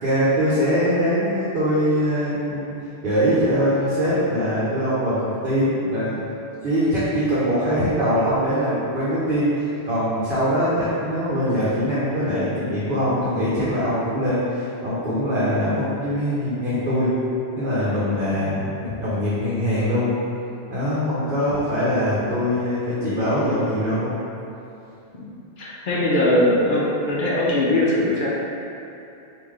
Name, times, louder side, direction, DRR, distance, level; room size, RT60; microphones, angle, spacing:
voice 1, 0.0-2.7 3.0-6.2 6.6-17.1 17.5-20.1 20.7-24.1, equal, 60° right, -10 dB, 0.9 m, -22 dB
voice 2, 25.6-28.3, left 1 dB, 60° left, -5 dB, 0.7 m, -21 dB
3.2 x 2.6 x 3.6 m, 2.7 s
omnidirectional pair, 1.1 m